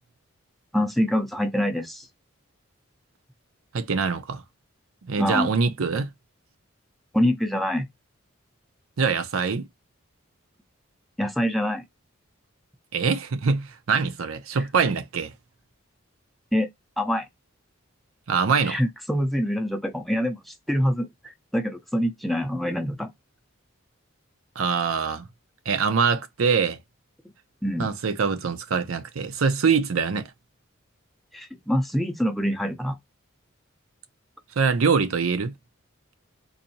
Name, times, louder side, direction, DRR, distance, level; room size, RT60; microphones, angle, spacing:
voice 1, 0.7-2.1 5.2-5.5 7.1-7.9 11.2-11.9 16.5-16.7 17.0-17.3 18.6-21.1 21.5-23.1 27.6-27.9 31.3-33.0, equal, ahead, 0.5 m, -25 dB
voice 2, 3.7-4.4 5.0-6.1 9.0-9.7 12.9-15.3 18.3-18.8 24.6-25.3 25.7-26.8 27.8-30.3 34.6-35.5, right 5 dB, 80° right, 0.5 m, -24 dB
4.0 x 2.7 x 2.7 m
head